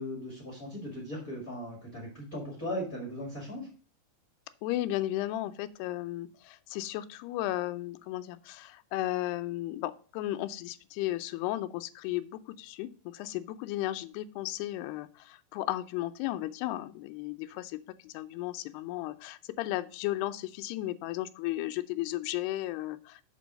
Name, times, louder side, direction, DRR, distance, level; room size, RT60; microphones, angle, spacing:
voice 1, 0.0-3.7, left 1 dB, 30° left, -3 dB, 1.8 m, -38 dB
voice 2, 4.6-23.2, left 15 dB, 85° left, 12 dB, 2.5 m, -35 dB
6.8 x 4.5 x 6.2 m, 0.40 s
omnidirectional pair, 4.8 m